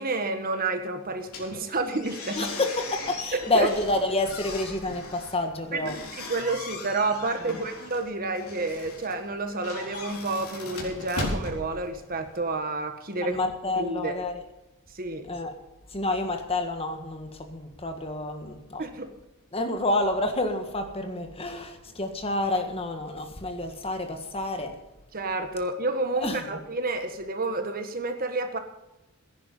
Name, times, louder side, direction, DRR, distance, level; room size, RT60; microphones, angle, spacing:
voice 1, 0.0-2.5 3.3-3.7 5.7-5.8 6.2-13.4 13.8-14.1 14.9-15.3 18.8-19.1 25.1-28.6, right 2 dB, 40° right, 7 dB, 1.5 m, -30 dB
sound 1, 1.2-12.4, left 2 dB, 75° left, 4.2 m, -38 dB
voice 2, 2.4-5.9 7.4-7.6 13.2-14.4 15.2-15.5 15.9-18.8 19.5-24.8 26.2-26.4, left 2 dB, 25° left, 6 dB, 1.7 m, -29 dB
16.0 x 10.5 x 5.5 m, 0.99 s
head